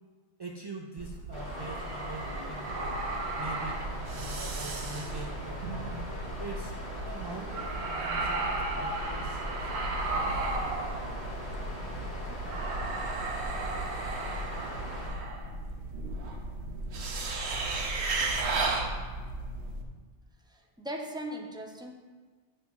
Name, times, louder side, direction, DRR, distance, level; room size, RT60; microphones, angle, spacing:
voice 1, 0.4-3.0 3.4-3.8 4.1-5.9 6.4-6.7 7.0-9.9, right 3 dB, 45° right, 1 dB, 0.3 m, -43 dB
sound 1, 1.0-19.8, right 2 dB, 90° right, 1.1 m, -34 dB
Water, 1.3-15.1, left 1 dB, 25° left, 2.2 m, -42 dB
voice 2, 20.5-21.9, right 1 dB, 5° right, 1 dB, 0.6 m, -38 dB
9.3 x 5.9 x 3.7 m, 1.4 s
omnidirectional pair, 1.1 m